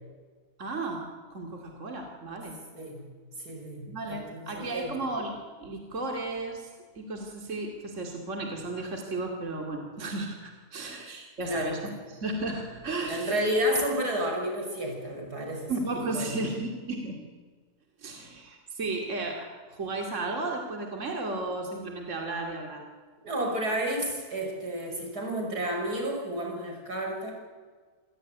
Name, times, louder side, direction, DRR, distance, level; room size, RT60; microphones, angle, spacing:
voice 1, 0.6-2.6 3.9-6.7 7.0-11.8 12.1-13.4 15.7-17.2 18.0-22.8, right 2 dB, 50° right, 2 dB, 2.8 m, -34 dB
voice 2, 2.7-3.1 3.4-4.9 11.4-11.8 13.1-16.4 23.2-27.3, equal, 85° right, 2 dB, 6.5 m, -31 dB
27.0 x 17.5 x 9.3 m, 1.5 s
omnidirectional pair, 1.7 m